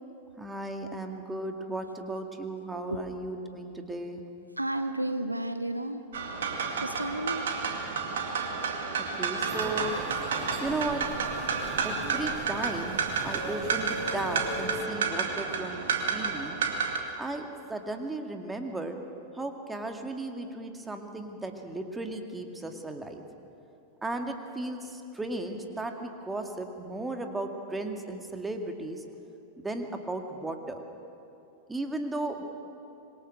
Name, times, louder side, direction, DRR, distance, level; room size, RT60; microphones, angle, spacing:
voice 1, 0.4-4.2 9.1-10.0 10.6-11.0 11.8-16.5 17.2-19.0 19.3-23.2 24.0-29.0 29.6-30.8 31.7-32.4, right 2 dB, 10° right, 4 dB, 2.1 m, -35 dB
voice 2, 4.6-6.0 6.5-7.4, right 1 dB, 85° right, 9 dB, 0.9 m, -32 dB
sound 1, 6.1-17.0, right 5 dB, 60° right, 2.3 m, -31 dB
sound 2, 9.5-14.8, right 2 dB, 30° right, 6.3 m, -39 dB
25.5 x 22.5 x 6.5 m, 2.8 s
figure-of-eight pair, 90°, 0 cm